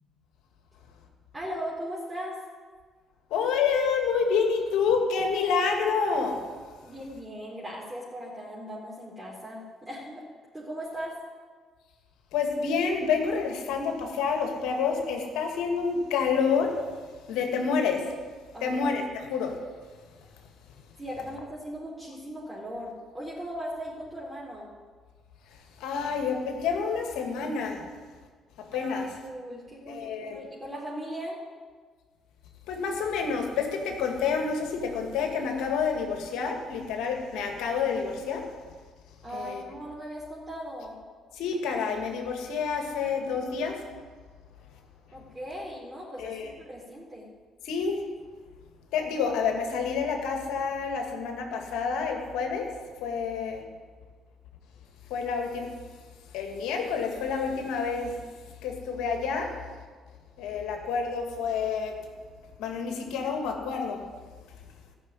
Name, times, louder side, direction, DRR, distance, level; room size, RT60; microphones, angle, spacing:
voice 1, 1.3-2.4 6.8-10.2 10.5-11.2 18.5-18.9 21.0-24.7 28.7-28.9 29.2-31.4 39.2-40.9 45.1-47.3, equal, 20° right, -6 dB, 4.5 m, -38 dB
voice 2, 3.3-6.4 12.3-16.7 17.3-18.1 18.6-19.0 19.3-19.6 20.7-20.8 25.8-27.8 28.6-29.1 29.9-30.4 32.7-38.5 39.3-39.6 41.4-43.8 46.2-46.5 47.6-48.0 48.9-52.7 53.0-53.6 55.1-55.7 56.3-58.2 58.6-59.5 60.4-61.9 62.6-64.0, left 5 dB, 75° left, 3 dB, 2.1 m, -28 dB
14.0 x 6.8 x 9.8 m, 1.5 s
hypercardioid pair, 55°, 0 cm